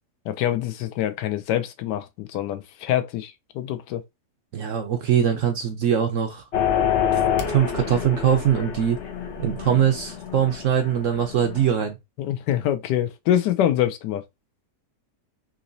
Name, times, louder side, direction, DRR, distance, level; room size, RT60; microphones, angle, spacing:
voice 1, 0.2-4.0 12.2-14.2, left 11 dB, 80° left, 1.2 m, -25 dB
voice 2, 4.5-6.4 7.1-7.2 7.5-9.0 9.4-12.0, right 9 dB, 65° right, 0.8 m, -22 dB
sound 1, 6.5-11.7, left 8 dB, 60° left, 0.8 m, -27 dB
3.7 x 3.0 x 2.6 m
omnidirectional pair, 1.8 m